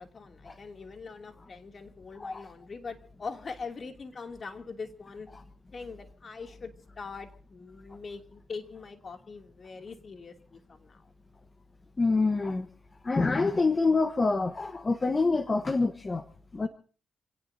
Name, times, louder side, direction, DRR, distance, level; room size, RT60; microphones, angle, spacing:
voice 1, 0.0-5.3 5.7-11.1, left 4 dB, 45° left, 5 dB, 2.8 m, -42 dB
voice 2, 12.0-12.7 13.0-16.2 16.5-16.7, left 3 dB, 30° left, 8 dB, 1.3 m, -26 dB
27.5 x 18.0 x 2.8 m, 0.41 s
cardioid pair, 80°, 0 cm